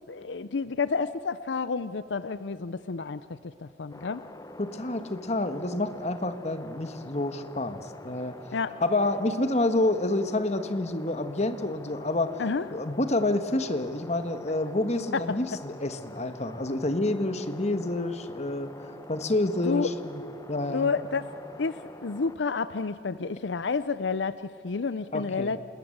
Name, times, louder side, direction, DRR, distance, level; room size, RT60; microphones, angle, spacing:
voice 1, 0.1-3.2 3.6-4.3 8.5-8.8 12.4-12.7 15.1-15.4 19.7-19.9 20.7-25.6, left 4 dB, 75° left, 14 dB, 0.6 m, -30 dB
sound 1, 3.9-22.4, left 1 dB, 20° left, 1.1 m, -46 dB
voice 2, 4.6-8.4 8.8-12.4 12.7-18.7 19.1-20.2 20.5-20.9 25.1-25.5, left 2 dB, 40° left, 10 dB, 1.5 m, -28 dB
28.0 x 20.5 x 7.9 m, 2.8 s
head